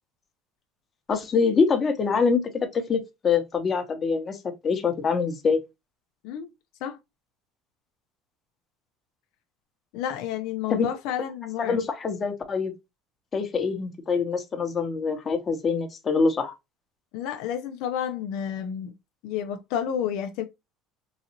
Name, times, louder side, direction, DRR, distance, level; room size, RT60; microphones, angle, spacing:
voice 1, 1.1-4.4 4.6-5.6 10.7-10.9 11.6-12.7 13.3-16.6, left 5 dB, 25° left, 0.9 m, -25 dB
voice 2, 9.9-11.8 17.1-18.9 19.2-20.4, left 9 dB, 70° left, 0.5 m, -30 dB
3.9 x 2.6 x 2.8 m
cardioid pair, 140°, 0 cm